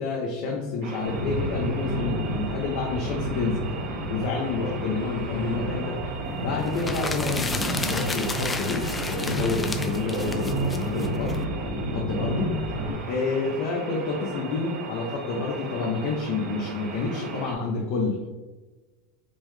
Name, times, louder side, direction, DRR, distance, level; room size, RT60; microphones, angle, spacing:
voice 1, 0.0-3.6 4.1-6.0 6.4-7.5 7.9-11.4 11.9-12.5 13.1-18.3, left 4 dB, 60° left, -1 dB, 0.7 m, -29 dB
sound 1, 0.8-17.5, right 3 dB, 65° right, 0.8 m, -37 dB
sound 2, 1.0-12.9, equal, 90° right, 1.5 m, -31 dB
sound 3, 6.7-11.4, left 3 dB, 15° left, 0.4 m, -33 dB
5.3 x 2.1 x 3.2 m, 1.2 s
supercardioid pair, 125°, 0 cm